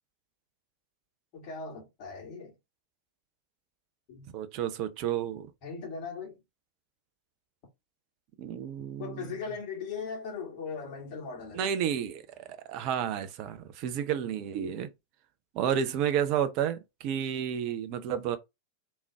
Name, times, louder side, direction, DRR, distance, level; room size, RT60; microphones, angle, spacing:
voice 1, 1.3-2.5 4.1-4.2 5.6-6.4 9.0-11.8, left 5 dB, 40° left, 2.1 m, -39 dB
voice 2, 4.3-5.5 8.4-9.3 11.5-14.9 15.5-18.4, right 9 dB, 40° right, 0.6 m, -31 dB
3.6 x 3.1 x 3.5 m
figure-of-eight pair, 90°, 0 cm